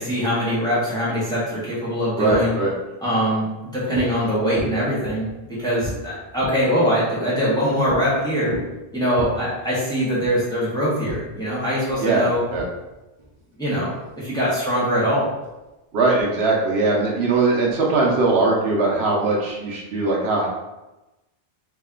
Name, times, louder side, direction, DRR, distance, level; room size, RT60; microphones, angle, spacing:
voice 1, 0.0-2.5 3.0-5.3 5.6-8.5 8.9-12.4 13.6-13.9 14.2-15.3, equal, 5° left, -9 dB, 1.3 m, -22 dB
sound 1, 1.8-2.8 3.9-4.2 4.6-6.7 7.8-8.0 8.4-9.3 10.2-10.4 11.0-14.4 15.1-15.7 16.1-16.2 16.5-18.3 18.9-19.7, right 1 dB, 35° right, 0.6 m, -35 dB
voice 2, 2.2-2.7 12.0-12.3 12.5-12.7 15.9-20.5, right 3 dB, 75° right, -2 dB, 1.0 m, -20 dB
3.1 x 2.8 x 3.7 m, 1.0 s
omnidirectional pair, 1.1 m